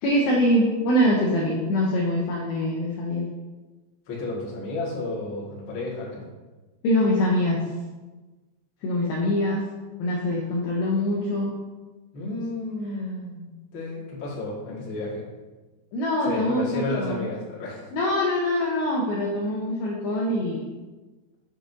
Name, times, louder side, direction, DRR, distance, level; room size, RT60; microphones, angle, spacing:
voice 1, 0.0-3.2 6.8-7.6 8.8-9.6 10.0-11.5 15.9-17.3 17.9-20.7, left 1 dB, 80° left, -3 dB, 2.2 m, -24 dB
voice 2, 4.1-6.3 12.1-15.2 16.2-17.9, left 2 dB, 50° left, -7 dB, 1.5 m, -32 dB
7.4 x 6.3 x 2.7 m, 1.2 s
omnidirectional pair, 5.2 m